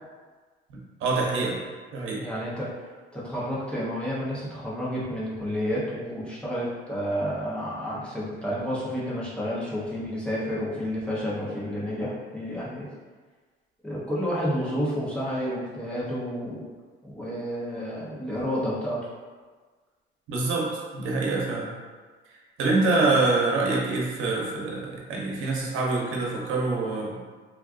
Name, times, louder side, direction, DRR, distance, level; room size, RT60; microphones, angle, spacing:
voice 1, 0.7-1.6 1.9-2.2 20.3-21.7 22.6-27.2, right 3 dB, 90° right, -3 dB, 0.7 m, -25 dB
voice 2, 2.1-2.7 3.1-12.9 13.8-16.6 17.0-19.1, equal, 5° left, -7 dB, 0.6 m, -30 dB
3.4 x 2.3 x 2.4 m, 1.4 s
cardioid pair, 180°, 20 cm